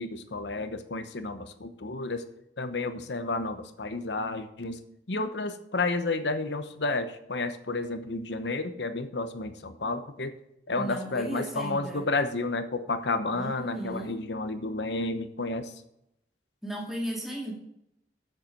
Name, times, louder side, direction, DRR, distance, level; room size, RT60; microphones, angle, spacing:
voice 1, 0.0-2.2 2.6-4.8 5.1-10.3 10.7-15.7, left 3 dB, 75° left, 9 dB, 1.0 m, -31 dB
voice 2, 10.7-12.1 13.3-14.2 16.6-17.5, right 1 dB, ahead, -2 dB, 2.3 m, -35 dB
8.0 x 7.5 x 6.6 m, 0.80 s
head